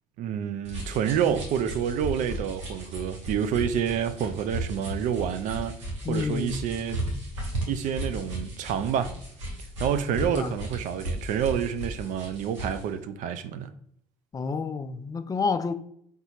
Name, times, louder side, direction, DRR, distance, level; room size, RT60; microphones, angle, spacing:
voice 1, 0.2-5.8 6.1-7.0 7.7-9.2 9.8-13.7, right 8 dB, 60° right, 0.4 m, -28 dB
sound 1, 0.6-12.9, right 1 dB, 90° right, 1.2 m, -35 dB
voice 2, 6.0-6.7 10.2-10.5 14.3-15.7, left 4 dB, 25° left, 0.3 m, -29 dB
4.2 x 3.6 x 2.9 m
hypercardioid pair, 65°, 15 cm